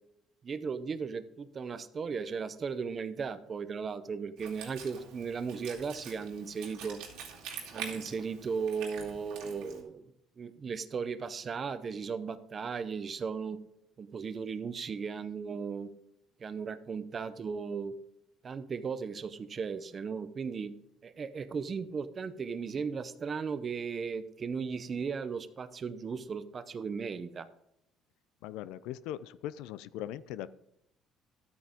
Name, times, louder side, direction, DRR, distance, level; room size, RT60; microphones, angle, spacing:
voice 1, 0.4-7.0 7.7-10.0 10.4-13.6 14.0-15.9 16.4-17.9 18.4-20.7 21.0-27.5, right 5 dB, 30° right, 12 dB, 0.6 m, -36 dB
Wind instrument woodwind instrument, 4.4-9.8, right 6 dB, 85° right, 2.5 m, -45 dB
voice 2, 28.4-30.5, left 12 dB, 85° left, 16 dB, 0.4 m, -40 dB
12.5 x 8.8 x 3.6 m, 0.79 s
cardioid pair, 145°, 0 cm